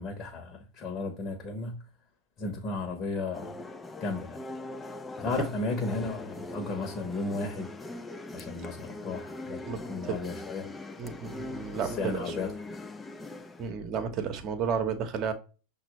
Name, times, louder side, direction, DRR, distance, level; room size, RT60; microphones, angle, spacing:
voice 1, 0.0-1.8 2.4-3.6 4.0-4.4 5.2-7.9 8.3-9.6 9.9-10.7 11.8-12.7, left 3 dB, 35° left, 1.0 m, -34 dB
sound 1, 3.3-13.7, left 2 dB, 15° left, 0.4 m, -41 dB
voice 2, 9.7-10.1 11.0-12.4 13.6-15.3, right 6 dB, 40° right, 0.9 m, -32 dB
5.9 x 2.4 x 3.0 m
hypercardioid pair, 100°, 0 cm